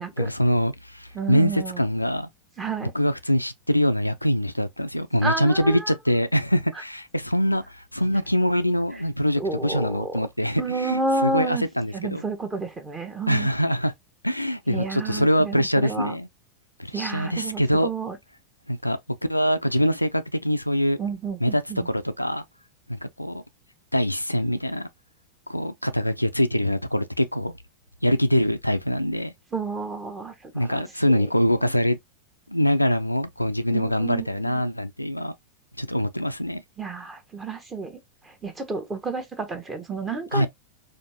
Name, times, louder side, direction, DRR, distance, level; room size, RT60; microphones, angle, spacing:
voice 1, 0.2-2.3 2.9-12.2 13.3-13.9 14.2-16.3 16.8-17.9 18.7-19.0 19.3-21.0 21.4-22.4 22.9-23.4 23.9-24.9 25.5-27.5 28.0-29.3 30.5-32.0 32.5-35.3 35.8-36.6 40.3-40.5, equal, 90° left, 0.3 m, -24 dB
voice 2, 1.1-1.8 2.6-2.9 5.2-5.9 8.9-9.0 9.4-10.2 10.6-11.6 11.9-13.5 14.7-16.2 16.9-18.2 21.0-21.9 29.5-31.3 31.6-31.7 33.7-34.6 36.8-38.0 38.2-40.5, right 3 dB, 15° right, 0.9 m, -30 dB
4.2 x 2.6 x 2.7 m
figure-of-eight pair, 90°, 0 cm